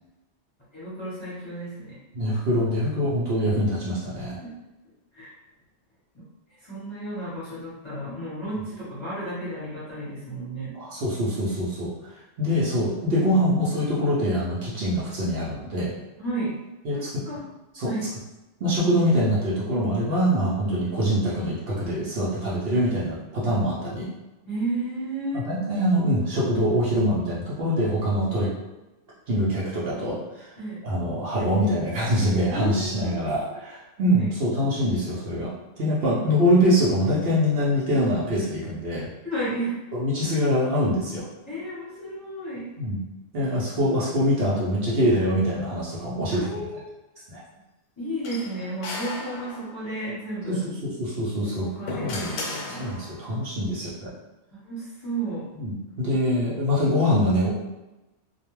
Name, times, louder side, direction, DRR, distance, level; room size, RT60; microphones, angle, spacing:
voice 1, 0.7-2.0 4.4-4.5 5.1-5.3 6.6-10.7 16.2-16.6 16.9-17.5 17.8-18.1 24.4-25.5 30.6-30.9 32.5-33.6 34.2-34.3 36.1-36.2 39.2-39.8 41.5-42.7 46.3-46.9 48.0-50.6 51.6-53.0 54.6-55.5, right 1 dB, 25° left, -10 dB, 0.8 m, -33 dB
voice 2, 2.1-4.4 10.7-11.9 12.4-15.9 16.8-17.2 17.7-17.9 18.6-24.1 25.3-28.5 29.3-30.5 30.8-39.1 39.9-41.3 42.8-43.0 43.3-46.6 47.3-47.4 50.5-51.7 52.0-52.5 52.8-54.1 55.6-57.5, equal, 60° right, -7 dB, 0.8 m, -24 dB
sound 1, 48.2-50.0 51.3-53.4, left 3 dB, 75° left, 0.9 m, -35 dB
2.3 x 2.2 x 3.0 m, 1.0 s
omnidirectional pair, 1.3 m